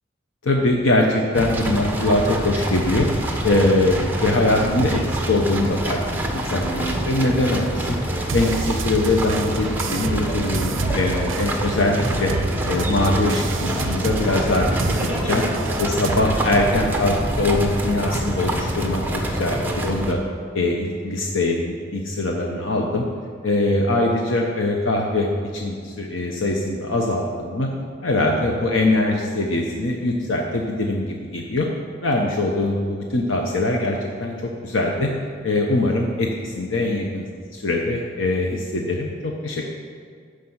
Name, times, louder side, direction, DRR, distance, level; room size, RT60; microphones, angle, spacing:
voice 1, 0.4-3.1 3.4-6.0 6.3-8.0 8.3-12.3 12.7-14.7 15.0-15.4 15.8-20.2 20.5-23.0 23.4-27.7 28.0-31.7 32.0-34.3 34.6-35.1 35.4-37.3 37.5-39.6, left 2 dB, 80° left, 0 dB, 1.0 m, -22 dB
sound 1, 1.3-20.1, right 1 dB, 10° right, 1.1 m, -26 dB
sound 2, 8.3-16.2, right 5 dB, 80° right, 0.5 m, -31 dB
13.0 x 5.1 x 7.9 m, 2.1 s
head